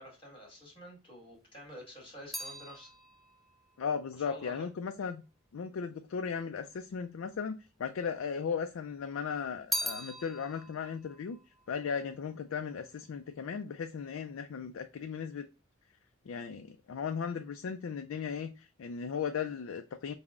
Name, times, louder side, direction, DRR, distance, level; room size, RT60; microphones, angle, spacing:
voice 1, 0.0-2.9 4.3-4.7, equal, 25° left, 1.8 m, -49 dB
sound 1, 1.3-5.8 6.6-7.4 7.6-8.8 9.1-12.6 12.9-13.4, equal, ahead, 0.3 m, -42 dB
voice 2, 3.8-5.2 5.5-11.4 11.7-15.5 16.3-20.1, left 6 dB, 80° left, 0.4 m, -36 dB
5.8 x 2.1 x 3.6 m
head